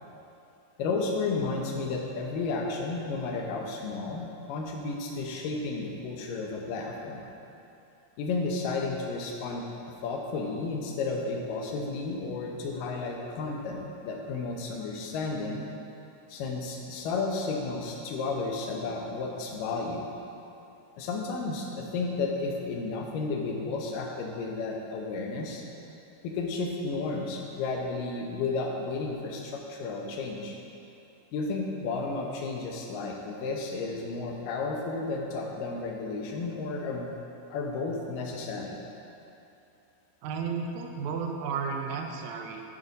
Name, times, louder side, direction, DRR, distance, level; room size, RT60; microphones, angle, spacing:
voice 1, 0.8-7.2 8.2-15.6 16.3-20.1 21.0-25.6 26.2-30.6 31.3-37.1 37.5-38.8, left 3 dB, 85° left, 0 dB, 2.5 m, -32 dB
voice 2, 40.2-42.6, right 5 dB, 80° right, 3 dB, 1.7 m, -33 dB
11.5 x 5.0 x 4.0 m, 2.9 s
omnidirectional pair, 3.8 m